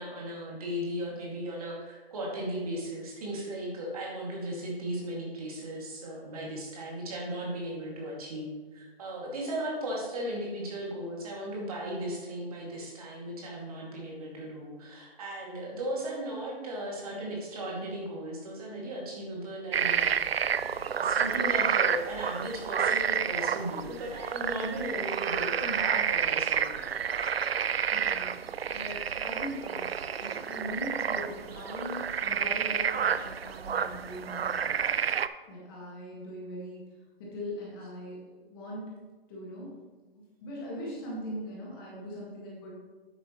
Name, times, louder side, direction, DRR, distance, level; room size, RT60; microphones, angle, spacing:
voice 1, 0.0-20.2 20.9-26.9, right 1 dB, 35° right, -3 dB, 2.5 m, -36 dB
sound 1, 19.7-35.3, right 8 dB, 75° right, 0.5 m, -30 dB
voice 2, 27.9-28.4 28.7-34.8 35.5-36.9 37.2-38.8 39.3-39.8 40.1-42.7, equal, 20° left, -4 dB, 1.9 m, -41 dB
9.8 x 8.1 x 3.2 m, 1.3 s
hypercardioid pair, 155°, 30 cm